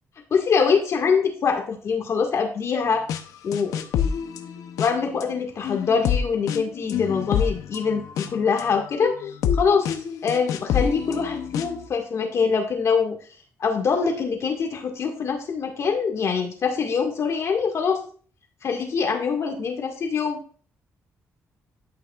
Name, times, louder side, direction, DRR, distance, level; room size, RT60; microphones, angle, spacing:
voice 1, 0.3-3.1 3.4-3.9 4.8-9.9 10.2-13.2 13.6-18.0 18.6-20.4, left 5 dB, 55° left, 3 dB, 1.9 m, -24 dB
sound 1, 3.1-3.2 3.5-5.2 5.6-11.9, left 8 dB, 85° left, 0.7 m, -27 dB
11.0 x 5.8 x 2.4 m, 0.42 s
cardioid pair, 95°, 6 cm